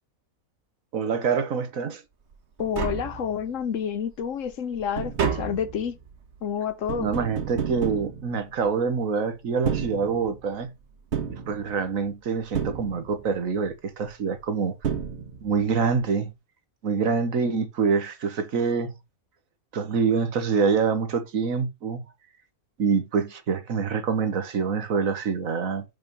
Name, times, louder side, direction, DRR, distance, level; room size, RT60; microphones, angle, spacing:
voice 1, 0.9-2.0 7.0-10.7 11.3-14.7 15.4-16.3 16.8-18.9 19.7-22.0 22.8-25.8, right 5 dB, 70° right, 1.5 m, -26 dB
Tap, 2.3-2.4 2.6-3.7 4.1-8.9 9.5-10.6 11.1-12.1 12.5-13.4 14.4-14.5 14.8-15.7 15.9-16.0, right 7 dB, 55° right, 1.4 m, -31 dB
voice 2, 2.6-6.0 6.4-7.1, left 8 dB, 65° left, 1.2 m, -29 dB
5.7 x 5.4 x 5.3 m
omnidirectional pair, 1.5 m